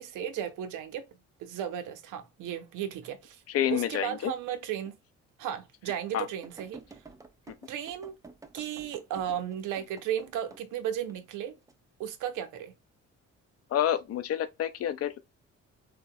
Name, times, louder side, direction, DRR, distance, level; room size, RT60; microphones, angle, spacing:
voice 1, 0.0-3.4 3.7-5.0 5.4-7.0 7.7-8.1 8.5-11.6 12.0-12.7, right 10 dB, 85° right, 0.7 m, -35 dB
voice 2, 3.5-4.3 6.1-6.3 7.5-7.6 13.7-15.2, left 10 dB, 55° left, 0.5 m, -29 dB
sound 1, 4.9-5.0 5.5-5.6 6.4-10.6 11.1-11.7 12.4-12.7, right 4 dB, 10° right, 0.3 m, -51 dB
3.0 x 2.2 x 2.6 m
cardioid pair, 90°, 30 cm